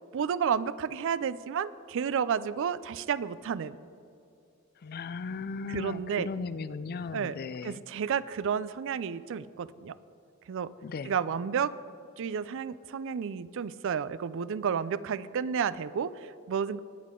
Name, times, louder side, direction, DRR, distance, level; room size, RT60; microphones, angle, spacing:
voice 1, 0.1-3.8 5.7-6.3 7.1-7.3 7.6-10.0 10.5-10.7 11.1-11.7 12.2-16.8, right 7 dB, 65° right, 17 dB, 0.4 m, -31 dB
voice 2, 4.8-7.8 10.8-11.1, left 5 dB, 45° left, 16 dB, 0.4 m, -37 dB
20.5 x 8.5 x 3.7 m, 2.6 s
head